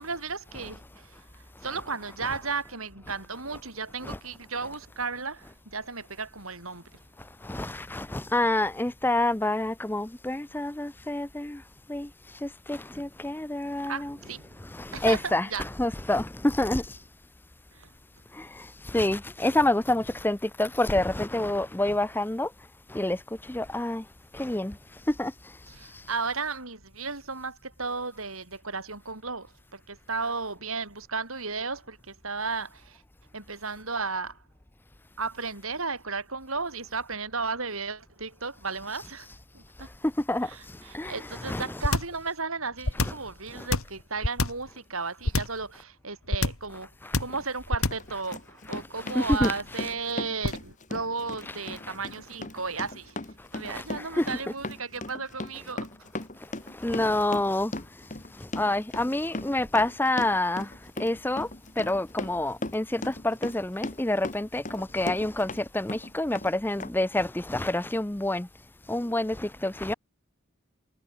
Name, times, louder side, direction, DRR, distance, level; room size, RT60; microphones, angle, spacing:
voice 1, 0.0-6.9 13.9-14.6 14.9-15.6 17.7-17.9 25.7-33.0 33.3-34.4 35.2-39.3 39.5-39.9 40.4-46.9 47.2-53.2 53.5-56.1, right 4 dB, 80° right, 7.9 m, -34 dB
voice 2, 7.4-11.6 11.9-12.1 12.4-14.2 14.7-16.9 18.4-22.5 22.9-23.2 23.5-24.0 24.3-24.7 25.1-25.3 40.0-40.5 40.9-41.8 43.0-43.1 43.6-43.7 47.0-47.2 49.1-49.5 51.8-51.9 53.7-54.3 56.8-57.7 58.5-60.7 61.0-61.5 61.8-68.5 68.9-69.9, left 1 dB, 10° left, 0.6 m, -28 dB
sound 1, 41.8-42.2 42.8-43.3 43.7-44.7 45.3-45.6 46.3-46.7 47.1-47.4 47.7-48.1 49.3-49.7 50.4-50.7, left 2 dB, 85° left, 2.6 m, -26 dB
Run, 47.3-47.4 47.9-65.6 65.9-66.5 66.8-66.9, left 2 dB, 35° left, 1.8 m, -37 dB
head